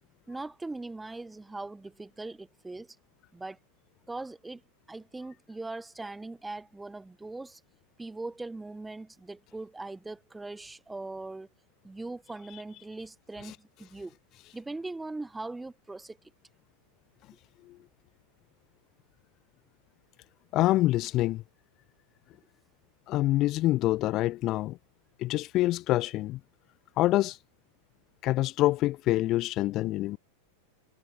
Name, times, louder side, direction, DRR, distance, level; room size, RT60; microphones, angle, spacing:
voice 1, 0.3-2.9 3.3-3.6 4.1-4.6 4.9-7.6 8.0-11.5 11.8-14.2 14.5-16.2, right 2 dB, 10° right, 3.2 m, -40 dB
voice 2, 20.5-21.4 23.1-24.8 25.2-26.4 27.0-27.4 28.2-30.2, left 16 dB, 35° left, 0.4 m, -26 dB
figure-of-eight pair, 90°, 0 cm